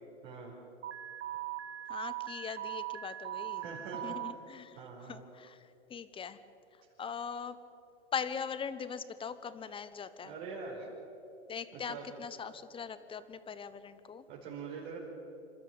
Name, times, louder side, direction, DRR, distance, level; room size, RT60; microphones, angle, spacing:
voice 1, 0.2-0.5 3.6-4.1 4.8-5.2 10.2-10.9 11.7-12.1 14.3-15.0, right 5 dB, 50° right, -3 dB, 4.9 m, -43 dB
Alarm, 0.8-4.3, right 13 dB, 80° right, 1.6 m, -40 dB
voice 2, 1.9-3.7 4.0-6.4 6.7-7.6 8.1-10.3 11.5-14.2, left 6 dB, 15° left, 13 dB, 1.0 m, -41 dB
27.0 x 13.0 x 8.7 m, 2.8 s
hypercardioid pair, 120°, 34 cm